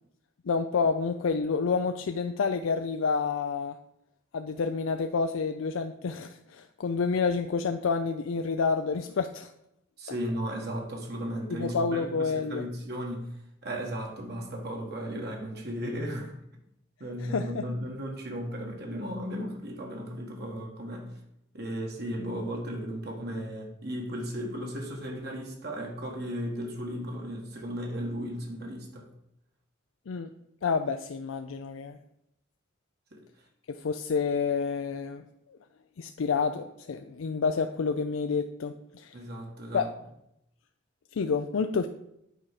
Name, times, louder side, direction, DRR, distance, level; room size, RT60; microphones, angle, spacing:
voice 1, 0.5-3.8 4.3-9.5 11.6-12.6 17.2-17.6 30.1-30.3 30.6-32.0 33.7-35.2 36.0-39.1 39.7-39.9 41.1-41.9, left 5 dB, 90° left, 7 dB, 0.4 m, -29 dB
voice 2, 10.0-13.3 13.6-16.3 17.0-21.1 21.5-29.1 33.1-33.2 39.1-39.9, equal, 55° right, 1 dB, 1.6 m, -35 dB
9.0 x 4.7 x 5.8 m, 0.81 s
head